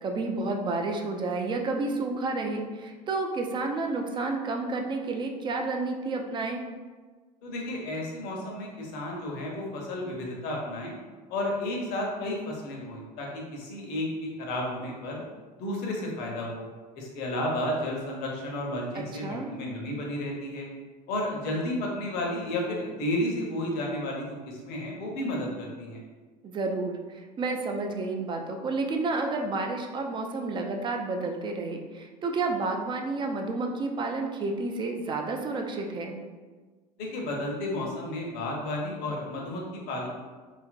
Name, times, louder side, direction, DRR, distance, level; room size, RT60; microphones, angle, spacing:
voice 1, 0.0-6.6 18.9-19.5 26.4-36.2, right 3 dB, 25° right, 2 dB, 0.3 m, -30 dB
voice 2, 7.4-10.9 11.3-15.2 15.6-16.6 17.0-20.7 21.1-26.0 37.0-40.1, left 1 dB, 50° left, -1 dB, 0.7 m, -32 dB
2.8 x 2.5 x 2.4 m, 1.4 s
figure-of-eight pair, 70°, 21 cm